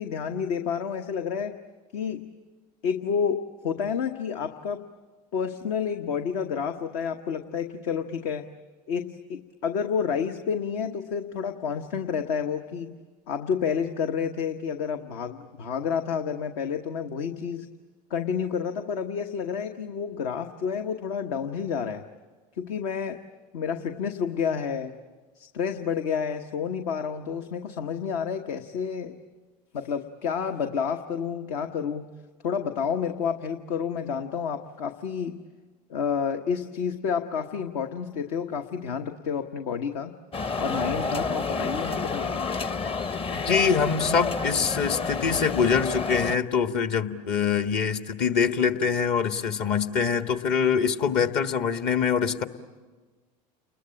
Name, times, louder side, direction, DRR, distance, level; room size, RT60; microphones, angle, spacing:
voice 1, 0.0-1.6 1.9-2.3 2.8-4.8 5.3-8.5 8.9-12.9 13.3-17.7 18.1-22.0 22.6-23.2 23.5-25.0 25.4-29.2 29.7-32.1 32.4-35.4 35.9-40.1 40.6-42.4, left 6 dB, 70° left, 6 dB, 1.2 m, -30 dB
sound 1, 40.3-46.4, left 4 dB, 25° left, 0.8 m, -29 dB
voice 2, 43.4-52.4, left 6 dB, 55° left, 8 dB, 1.6 m, -24 dB
30.0 x 21.5 x 8.8 m, 1.4 s
hypercardioid pair, 85°, 21 cm